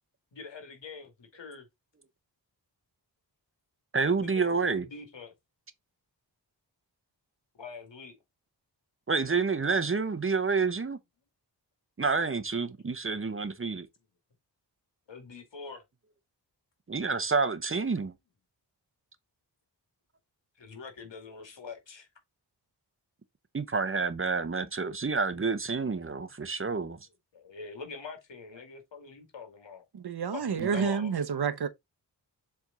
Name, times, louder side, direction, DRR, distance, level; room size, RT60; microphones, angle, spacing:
voice 1, 0.3-1.7 4.2-5.3 7.5-8.2 15.1-15.8 20.6-22.1 27.3-29.9 30.3-31.2, left 5 dB, 85° left, 2.2 m, -44 dB
voice 2, 3.9-4.8 9.1-11.0 12.0-13.9 16.9-18.1 23.5-27.0 30.6-30.8, right 4 dB, 30° right, 0.7 m, -29 dB
voice 3, 29.9-31.7, right 6 dB, 60° right, 0.9 m, -29 dB
7.4 x 3.5 x 3.8 m
wide cardioid pair, 110°, 43 cm